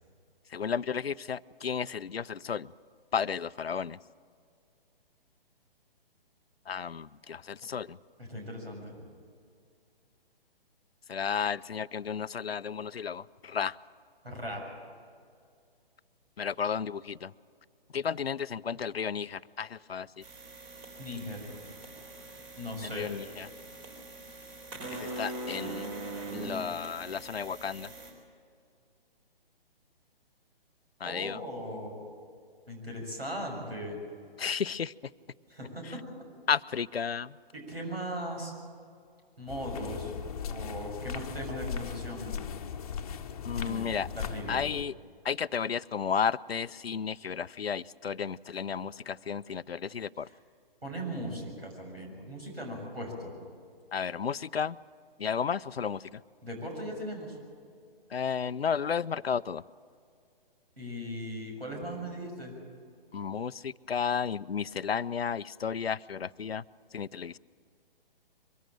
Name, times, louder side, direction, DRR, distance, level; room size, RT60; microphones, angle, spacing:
voice 1, 0.5-2.7 3.1-4.0 6.7-8.0 11.1-13.8 16.4-17.3 17.9-20.1 22.9-23.5 24.9-25.9 26.3-27.9 31.0-31.4 34.4-34.9 36.5-37.3 43.4-44.1 44.5-44.9 45.2-50.3 53.9-54.8 55.2-56.2 58.1-59.6 63.1-66.6 66.9-67.4, left 7 dB, 85° left, 18 dB, 0.5 m, -33 dB
voice 2, 8.2-9.1 14.2-14.6 21.0-21.6 22.6-23.1 31.0-32.0 32.7-34.0 35.5-36.0 37.5-38.5 39.4-40.1 40.5-42.5 43.6-44.6 50.2-50.4 50.8-53.3 56.4-57.4 60.8-62.6, equal, 85° right, 1 dB, 6.8 m, -38 dB
sound 1, 20.2-28.1, right 2 dB, 30° right, 4.0 m, -42 dB
sound 2, 39.5-44.8, left 7 dB, 40° left, 1.0 m, -38 dB
23.0 x 15.0 x 8.9 m, 2.3 s
figure-of-eight pair, 135°, 30 cm